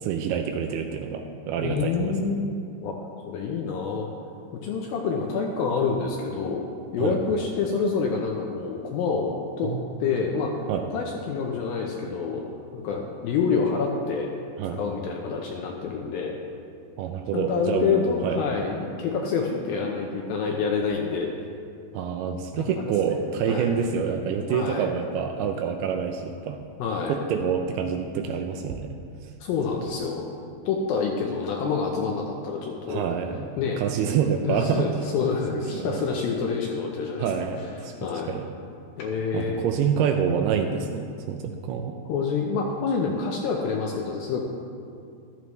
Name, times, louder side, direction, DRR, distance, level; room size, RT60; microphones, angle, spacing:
voice 1, 0.0-2.1 7.0-7.2 9.6-10.0 10.7-10.9 14.6-14.8 17.0-18.4 21.9-26.6 27.1-29.0 32.9-33.5 33.8-34.9 35.7-36.1 37.2-37.9 38.3-38.5 39.3-41.9, right 7 dB, 80° right, 5 dB, 2.4 m, -27 dB
voice 2, 1.6-3.0 3.2-4.1 4.5-6.6 6.9-9.7 10.0-10.6 10.9-12.5 12.7-14.3 14.7-16.4 17.3-21.3 22.6-23.2 23.5-23.8 24.5-24.9 26.8-27.2 29.4-30.3 30.7-33.0 33.6-33.8 34.4-37.3 38.0-38.3 39.0-39.6 42.1-44.4, left 5 dB, 80° left, 0 dB, 2.2 m, -27 dB
14.0 x 12.5 x 3.2 m, 2.4 s
omnidirectional pair, 4.9 m